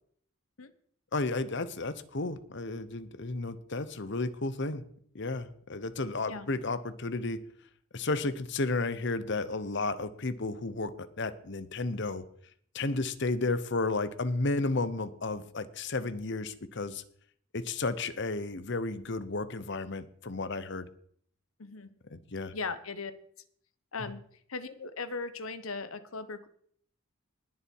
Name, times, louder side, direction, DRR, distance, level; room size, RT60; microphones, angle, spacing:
voice 1, 1.1-4.8 5.1-7.4 7.9-12.2 12.7-17.0 17.5-20.9 22.1-22.5, left 3 dB, 55° left, 14 dB, 1.0 m, -33 dB
voice 2, 21.6-21.9 22.5-23.1 23.9-24.2 24.5-26.5, left 4 dB, 90° left, 12 dB, 1.1 m, -38 dB
19.5 x 7.1 x 4.6 m, 0.63 s
head